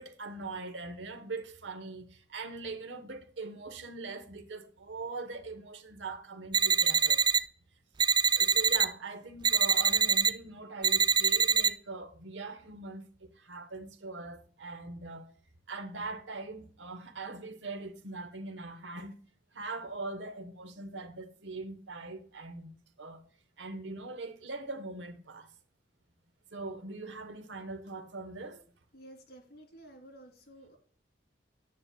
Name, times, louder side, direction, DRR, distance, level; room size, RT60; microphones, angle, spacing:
voice 1, 0.0-7.2 8.3-15.3 15.7-19.2 19.5-22.7 23.0-23.2 23.6-25.5 26.5-28.6, right 3 dB, 90° right, 1.0 m, -41 dB
sound 1, 6.5-7.4 8.0-8.9 9.4-10.3 10.8-11.7, right 6 dB, 25° right, 0.4 m, -24 dB
voice 2, 28.9-30.8, right 1 dB, 60° left, 2.8 m, -52 dB
9.7 x 8.5 x 2.2 m
head